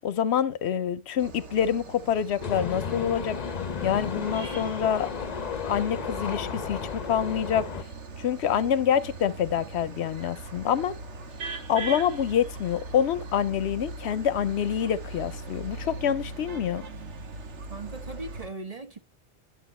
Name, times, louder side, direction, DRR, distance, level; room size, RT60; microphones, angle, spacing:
voice 1, 0.0-3.4 3.8-5.1 5.6-7.8 8.2-10.9 11.7-16.8, left 9 dB, 75° left, 0.9 m, -26 dB
sound 1, 1.2-18.5, right 3 dB, 85° right, 1.5 m, -40 dB
sound 2, 2.4-7.8, left 6 dB, 40° left, 0.7 m, -33 dB
voice 2, 17.7-19.0, right 3 dB, 35° right, 0.9 m, -38 dB
10.0 x 6.1 x 4.2 m
omnidirectional pair, 1.2 m